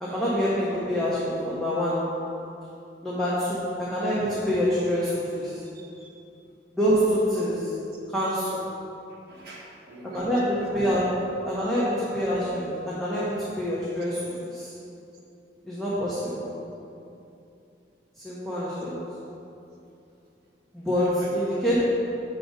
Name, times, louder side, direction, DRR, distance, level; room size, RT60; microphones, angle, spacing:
voice 1, 0.0-2.1 3.0-5.6 6.7-7.7 8.1-8.6 10.1-11.1 11.5-14.2 14.5-14.7 15.6-16.5 18.2-19.0 20.7-21.8, equal, ahead, -9 dB, 0.9 m, -26 dB
voice 2, 5.7-6.2 9.1-10.3 10.8-10.9 21.0-21.6, right 1 dB, 65° right, -4 dB, 1.3 m, -45 dB
7.5 x 3.9 x 5.2 m, 2.7 s
head